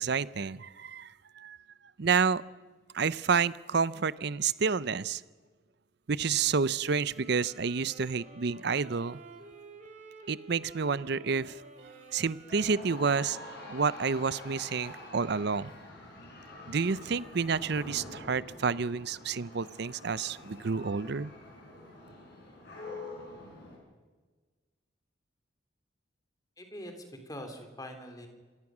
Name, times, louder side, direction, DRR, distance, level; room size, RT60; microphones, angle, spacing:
voice 1, 0.0-1.6 2.0-2.4 2.9-5.2 6.1-9.2 10.3-11.6 12.1-13.4 13.7-15.7 16.7-21.3, right 5 dB, 55° right, 18 dB, 0.6 m, -29 dB
sound 1, 6.9-13.7, right 4 dB, 40° right, 2.9 m, -51 dB
sound 2, 12.5-23.8, left 2 dB, 55° left, 5.9 m, -46 dB
voice 2, 26.6-28.3, equal, 20° left, 5 dB, 2.9 m, -43 dB
26.5 x 18.0 x 6.2 m, 1.4 s
head